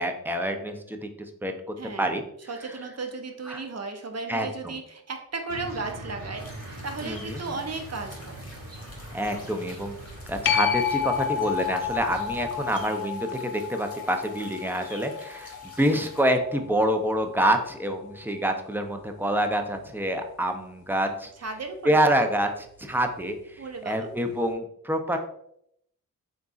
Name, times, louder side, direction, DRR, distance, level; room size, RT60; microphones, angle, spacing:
voice 1, 0.0-2.2 3.5-3.6 4.3-4.7 7.0-7.6 9.1-10.0 10.3-21.3 21.8-25.2, right 1 dB, 5° right, 5 dB, 0.5 m, -27 dB
voice 2, 1.8-8.4 21.4-21.9 23.6-24.0, right 3 dB, 45° right, 5 dB, 0.7 m, -35 dB
sound 1, 5.5-12.8, right 1 dB, 65° right, 1.3 m, -42 dB
sound 2, 6.4-16.3, left 2 dB, 40° left, 1.4 m, -49 dB
sound 3, 10.5-17.6 23.2-23.3, left 8 dB, 80° left, 0.5 m, -31 dB
3.9 x 3.6 x 2.4 m, 0.72 s
cardioid pair, 45°, 36 cm